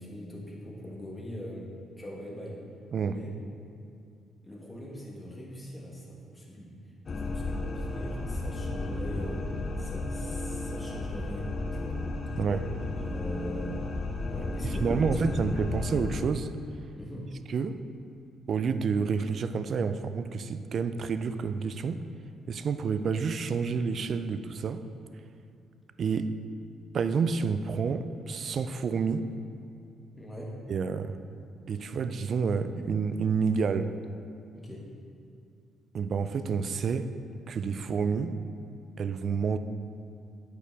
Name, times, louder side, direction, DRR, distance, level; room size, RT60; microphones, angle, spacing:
voice 1, 0.0-1.7 2.0-2.6 3.0-3.3 4.4-6.8 7.1-12.0 12.3-12.4 12.7-13.8 14.3-15.2 17.0-17.3 30.2-30.5 34.5-34.8, equal, 15° left, -3 dB, 1.4 m, -41 dB
voice 2, 2.9-3.2 12.4-12.7 14.6-16.5 17.5-17.8 18.5-22.0 22.5-24.8 26.0-26.3 26.9-29.3 30.7-31.2 31.7-33.9 35.9-37.1 37.5-38.4 39.0-39.6, right 5 dB, 55° right, 10 dB, 0.3 m, -29 dB
sound 1, 7.1-16.2, left 2 dB, 45° left, 0.5 m, -33 dB
8.2 x 4.9 x 3.4 m, 2.5 s
cardioid pair, 90°, 0 cm